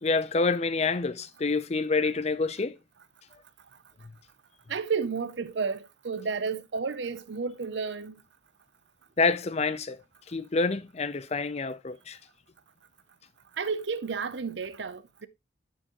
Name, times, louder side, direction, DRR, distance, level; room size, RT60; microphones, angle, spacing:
voice 1, 0.0-2.8 9.2-10.0 10.3-12.2, left 4 dB, 35° left, 0.5 m, -27 dB
voice 2, 4.7-8.2 13.6-15.3, right 5 dB, 75° right, 0.6 m, -32 dB
9.9 x 4.6 x 3.0 m
head